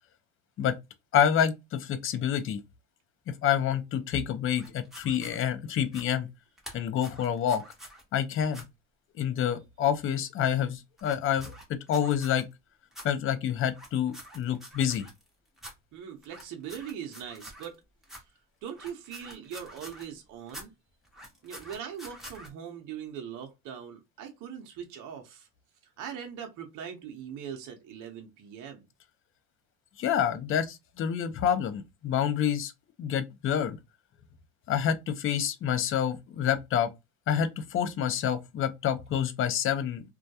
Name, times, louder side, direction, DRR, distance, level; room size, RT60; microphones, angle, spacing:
voice 1, 1.1-2.6 3.3-6.3 6.7-7.6 8.1-8.6 9.2-11.5 11.9-12.5 13.0-15.1 30.0-32.7 33.0-33.8 34.7-36.9 37.3-40.0, left 9 dB, 35° left, 0.4 m, -28 dB
sound 1, 4.6-5.4 5.8-6.1 6.6-8.0 8.5-8.6 11.0-12.4 12.9-13.1 13.7-15.3 15.6-15.7 16.2-17.8 18.0-18.2 18.7-20.1 20.5-20.7 21.0-22.5, equal, ahead, 0.9 m, -47 dB
voice 2, 15.9-17.8 18.6-20.7 21.4-25.5 26.0-28.9, right 8 dB, 55° right, 0.7 m, -41 dB
2.2 x 2.2 x 2.6 m
cardioid pair, 120°, 38 cm